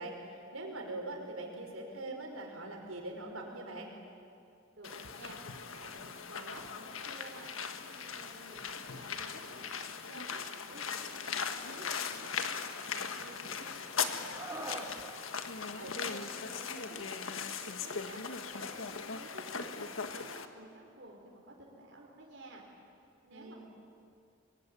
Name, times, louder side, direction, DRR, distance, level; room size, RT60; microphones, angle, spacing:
voice 1, 0.0-3.9 15.8-16.3 23.3-23.6, right 2 dB, 90° right, 1 dB, 5.1 m, -42 dB
voice 2, 4.7-5.4 5.7-12.2 12.4-14.9 15.5-22.6 23.2-23.6, right 2 dB, 55° right, -1 dB, 4.3 m, -53 dB
sound 1, 4.8-20.4, left 6 dB, 75° left, 1.5 m, -39 dB
Screaming, 14.3-14.9 16.4-16.6, right 2 dB, 15° right, 2.8 m, -42 dB
25.0 x 22.5 x 9.8 m, 2.5 s
head